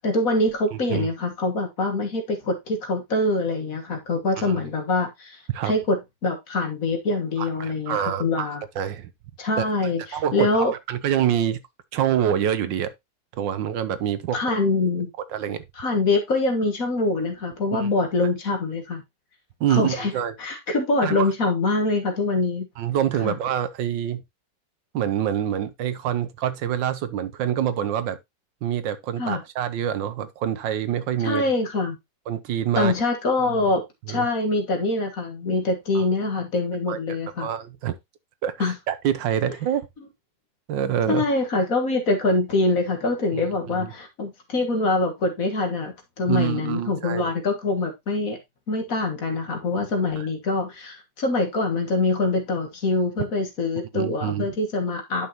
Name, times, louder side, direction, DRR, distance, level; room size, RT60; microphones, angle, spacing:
voice 1, 0.0-5.4 5.6-6.0 6.2-8.6 9.4-10.7 14.3-15.1 15.8-19.0 19.7-20.1 20.4-22.7 23.2-23.4 29.2-29.4 31.2-32.0 32.7-33.8 34.1-37.5 38.6-38.7 41.1-48.4 48.7-55.3, left 2 dB, 50° left, 1.9 m, -24 dB
voice 2, 0.7-1.1 4.4-4.6 5.5-5.7 7.4-9.1 9.6-9.7 10.1-11.6 11.9-12.9 13.4-14.6 15.3-15.6 17.7-17.9 19.6-20.3 21.0-21.3 22.8-24.2 24.9-28.2 28.6-31.4 32.3-32.9 34.1-34.3 35.9-36.0 36.9-37.9 38.4-39.8 40.7-41.2 43.3-43.9 46.3-47.3 50.2-50.3 53.9-54.5, right 10 dB, 85° right, 1.6 m, -26 dB
10.5 x 5.7 x 2.9 m
omnidirectional pair, 2.0 m